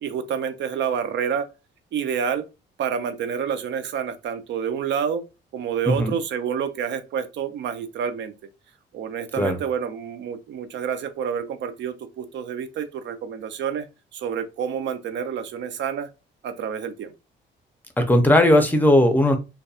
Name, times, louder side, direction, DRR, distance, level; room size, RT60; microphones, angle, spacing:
voice 1, 0.0-1.5 1.9-2.4 2.8-5.3 5.5-8.3 8.9-13.9 14.1-16.1 16.4-17.1, right 7 dB, 65° right, 0.5 m, -28 dB
voice 2, 5.9-6.2 9.4-9.6 18.0-19.4, left 1 dB, 10° left, 0.6 m, -17 dB
2.6 x 2.2 x 2.3 m
cardioid pair, 90°, 20 cm